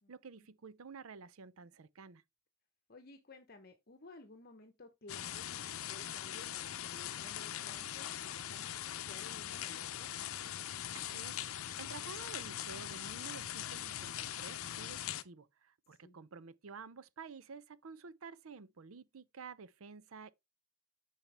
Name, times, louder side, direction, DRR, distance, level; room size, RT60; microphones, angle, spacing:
voice 1, 0.1-2.2 10.9-11.4 11.8-20.3, right 5 dB, 80° right, 0.6 m, -51 dB
voice 2, 2.9-10.1 16.0-16.2, left 3 dB, 45° left, 1.0 m, -56 dB
sound 1, 5.1-15.2, left 11 dB, 85° left, 0.6 m, -41 dB
9.0 x 5.7 x 3.4 m
head